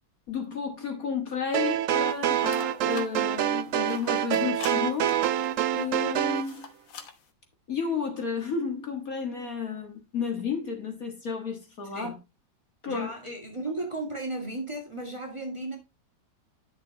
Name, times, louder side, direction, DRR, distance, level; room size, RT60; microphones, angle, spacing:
voice 1, 0.3-5.2 5.7-6.7 7.7-12.1 12.8-13.1, left 6 dB, 50° left, 2.0 m, -32 dB
sound 1, 1.5-6.5, right 10 dB, 70° right, 0.7 m, -26 dB
sound 2, 2.1-7.3, left 6 dB, 85° left, 1.9 m, -47 dB
voice 2, 12.8-15.8, right 2 dB, 15° right, 2.1 m, -35 dB
10.5 x 6.7 x 2.9 m
omnidirectional pair, 2.0 m